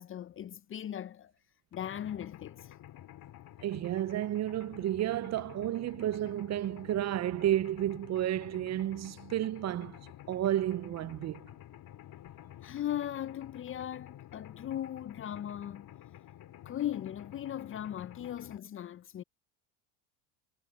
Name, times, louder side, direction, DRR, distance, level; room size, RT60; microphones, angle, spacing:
voice 1, 0.0-1.3 1.7-2.8 12.6-15.9 16.7-19.2, left 11 dB, 30° left, 0.5 m, -38 dB
Mechanisms, 1.7-18.6, left 12 dB, 50° left, 2.8 m, -51 dB
voice 2, 3.6-10.0 10.3-11.4, right 12 dB, 35° right, 0.5 m, -31 dB
supercardioid pair, 90°, 45 cm